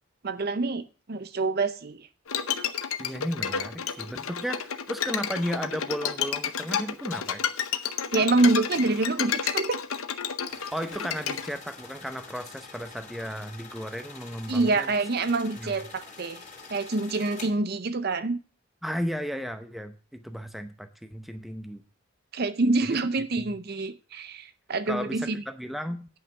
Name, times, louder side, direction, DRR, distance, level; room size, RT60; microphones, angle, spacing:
voice 1, 0.2-2.1 8.1-9.8 14.5-16.4 16.7-18.4 22.3-25.4, right 3 dB, 45° right, 0.6 m, -26 dB
Bowed string instrument, 2.3-11.5, left 7 dB, 75° left, 0.8 m, -31 dB
voice 2, 3.0-7.4 10.7-14.9 15.6-15.8 18.8-21.8 22.8-23.0 23.4-23.6 24.9-26.1, equal, ahead, 0.7 m, -34 dB
sound 1, 10.5-17.5, left 4 dB, 35° left, 2.6 m, -46 dB
9.5 x 5.6 x 6.5 m
head